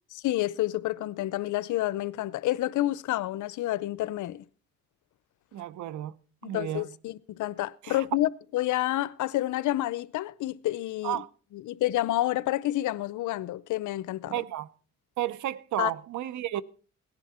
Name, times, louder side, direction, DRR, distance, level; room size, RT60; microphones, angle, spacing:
voice 1, 0.1-4.4 6.4-11.2 11.5-14.3 15.8-15.9, left 15 dB, 80° left, 0.7 m, -29 dB
voice 2, 5.5-6.2 6.4-6.8 7.8-8.0 11.0-11.3 14.3-14.7 15.2-16.6, right 13 dB, 75° right, 0.8 m, -32 dB
17.5 x 10.5 x 4.3 m
cardioid pair, 90°, 30 cm